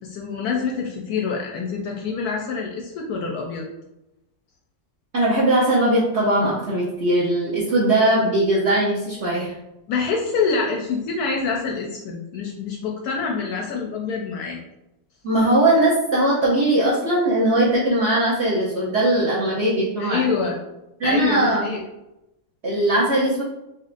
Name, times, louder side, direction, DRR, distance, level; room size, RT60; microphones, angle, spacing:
voice 1, 0.0-3.7 9.9-14.6 20.0-20.5 21.0-21.8, left 5 dB, 70° left, 0 dB, 0.9 m, -26 dB
voice 2, 5.1-9.5 15.2-20.2 21.0-21.7 22.6-23.4, right 1 dB, 55° right, -7 dB, 0.7 m, -20 dB
4.2 x 2.9 x 2.5 m, 0.91 s
omnidirectional pair, 2.0 m